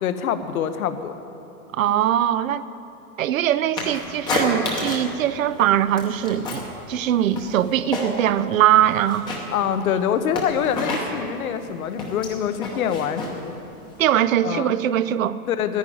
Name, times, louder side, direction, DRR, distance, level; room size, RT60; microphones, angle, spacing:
voice 1, 0.0-1.2 9.5-13.5 14.4-14.8 15.5-15.8, left 8 dB, 65° left, 10 dB, 1.0 m, -25 dB
voice 2, 1.7-2.6 3.2-6.6 6.9-9.3 14.0-15.4, right 11 dB, 60° right, 15 dB, 0.6 m, -21 dB
sound 1, 3.8-5.2 5.5-6.7 7.0-8.4 8.7-14.1, left 2 dB, 10° left, 0.8 m, -30 dB
11.0 x 10.5 x 9.3 m, 2.8 s
supercardioid pair, 170°, 46 cm